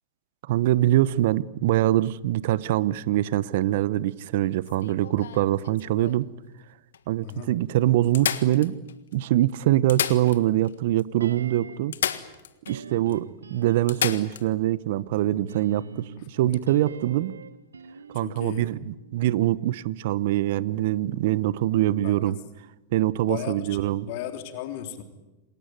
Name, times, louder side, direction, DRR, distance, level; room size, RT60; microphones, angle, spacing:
voice 1, 0.5-6.3 7.1-8.8 9.1-12.0 12.7-17.4 18.1-22.4 22.9-24.1, right 14 dB, 60° right, 0.9 m, -24 dB
sound 1, 4.6-6.3 6.9-7.0 7.3-7.4 8.1-9.1 9.7-10.7 11.0-11.1 11.9-12.8 13.1-13.2 13.9-14.5 16.4-16.6, left 9 dB, 75° left, 1.6 m, -31 dB
voice 2, 7.2-7.5 13.0-13.2 16.2-16.5 18.1-18.7 22.0-22.3 23.2-25.0, left 10 dB, 55° left, 3.5 m, -36 dB
sound 2, 11.2-12.0 12.7-14.3 15.3-19.5 19.8-19.9, right 5 dB, 90° right, 1.2 m, -43 dB
28.0 x 19.5 x 9.4 m
hypercardioid pair, 100°, 0 cm